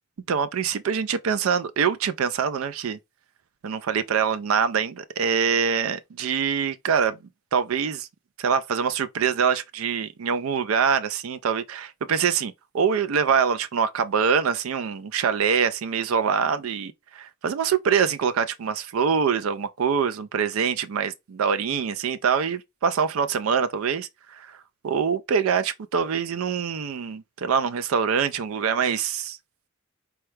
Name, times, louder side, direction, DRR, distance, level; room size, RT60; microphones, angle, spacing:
voice 1, 0.3-3.0 3.6-7.2 7.5-8.1 8.4-24.6 24.8-29.4, right 6 dB, 80° right, 0.4 m, -24 dB
4.4 x 2.3 x 3.2 m
head